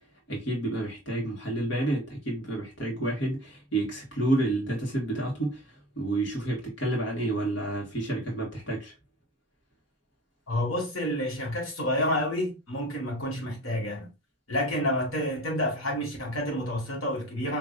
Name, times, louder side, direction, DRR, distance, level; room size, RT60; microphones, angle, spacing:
voice 1, 0.3-8.9, right 1 dB, 60° left, 1.6 m, -30 dB
voice 2, 10.5-14.1 14.5-17.6, left 1 dB, 90° left, 1.8 m, -29 dB
5.0 x 2.9 x 2.4 m
head